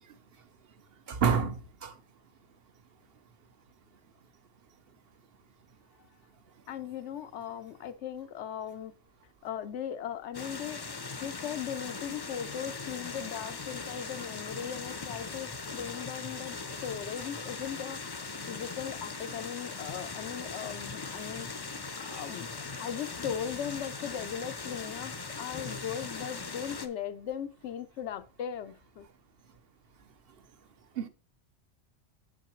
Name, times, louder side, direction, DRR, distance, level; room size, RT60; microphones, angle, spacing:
voice 1, 1.1-1.9 31.0-31.1, right 6 dB, 60° right, 1.0 m, -28 dB
voice 2, 6.7-8.9 9.4-10.9 11.2-22.5 22.8-29.1, left 9 dB, 85° left, 1.0 m, -38 dB
sound 1, 10.3-26.9, left 4 dB, 30° left, 0.5 m, -40 dB
7.5 x 7.2 x 3.1 m
omnidirectional pair, 1.1 m